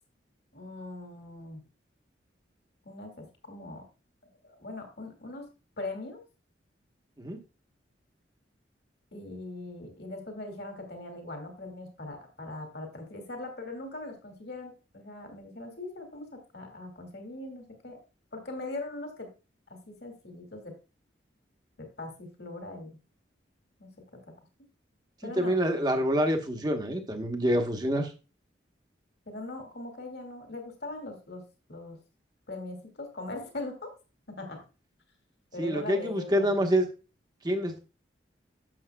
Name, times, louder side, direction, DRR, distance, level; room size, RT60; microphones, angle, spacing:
voice 1, 0.5-1.6 2.9-3.8 4.4-5.4 5.8-6.2 9.1-18.0 18.3-19.3 19.7-20.7 21.8-23.0 23.8-23.9 24.2-24.3 25.2-25.6 29.3-31.4 31.7-32.0 32.5-33.9 34.3-34.6 35.5-36.7, left 2 dB, 60° left, 4 dB, 2.0 m, -40 dB
voice 2, 25.2-28.1 35.6-36.9 37.4-37.8, equal, 20° right, 5 dB, 1.0 m, -27 dB
11.0 x 7.2 x 2.2 m, 0.31 s
head